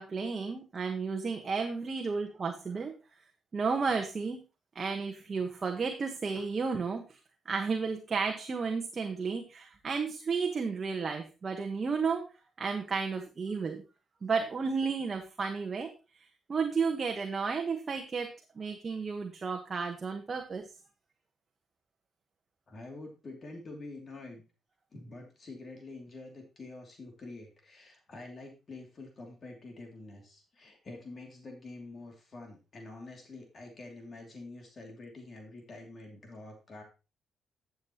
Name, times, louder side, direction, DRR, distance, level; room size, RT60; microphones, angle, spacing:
voice 1, 0.0-3.0 3.5-4.4 4.7-7.2 7.4-12.3 12.6-13.8 14.2-20.7, right 5 dB, 35° right, 4 dB, 1.3 m, -33 dB
voice 2, 22.7-24.4 24.9-36.8, left 2 dB, 40° left, 2 dB, 2.8 m, -47 dB
11.5 x 7.3 x 3.0 m, 0.30 s
cardioid pair, 90°, 0 cm